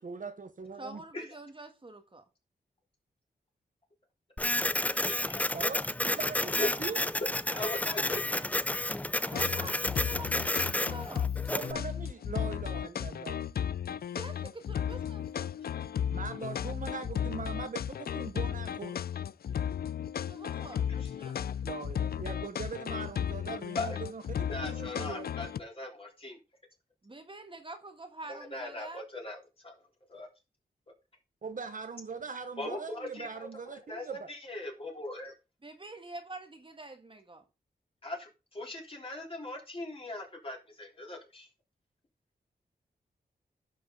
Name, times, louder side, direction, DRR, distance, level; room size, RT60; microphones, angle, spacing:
voice 1, 0.0-1.0 5.5-7.0 11.5-13.5 16.1-19.0 21.6-25.3 31.4-34.3, right 5 dB, 50° right, 1.0 m, -41 dB
voice 2, 0.8-2.2 9.2-11.7 14.1-15.5 20.3-21.4 27.0-29.0 35.6-37.4, right 2 dB, 30° right, 1.5 m, -46 dB
Printer, 4.4-11.7, left 1 dB, 10° left, 0.5 m, -31 dB
voice 3, 5.0-5.4 6.6-6.7 7.2-8.4 21.0-21.1 23.8-24.0 24.5-26.4 28.3-29.8 30.1-30.3 32.6-35.3 38.0-41.5, left 2 dB, 35° left, 3.6 m, -39 dB
sound 1, 9.3-25.6, left 9 dB, 65° left, 0.4 m, -34 dB
11.5 x 5.4 x 3.8 m
cardioid pair, 70°, 17 cm